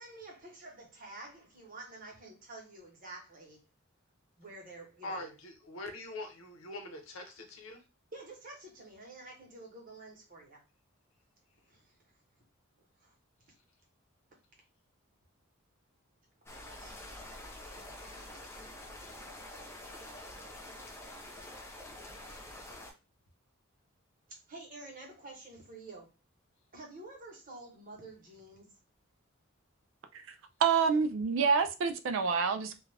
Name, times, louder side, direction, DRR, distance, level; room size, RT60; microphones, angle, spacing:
voice 1, 0.0-3.7 4.4-5.4 8.1-10.6 11.7-12.0 13.0-13.1 16.7-17.0 20.0-20.1 24.5-26.1 26.7-28.7, right 2 dB, 40° right, 1.0 m, -49 dB
voice 2, 5.0-7.8, left 2 dB, 70° left, 0.7 m, -43 dB
sound 1, 16.5-22.9, left 1 dB, 10° left, 0.4 m, -47 dB
voice 3, 30.6-32.8, right 5 dB, 65° right, 0.3 m, -27 dB
2.4 x 2.3 x 3.2 m
head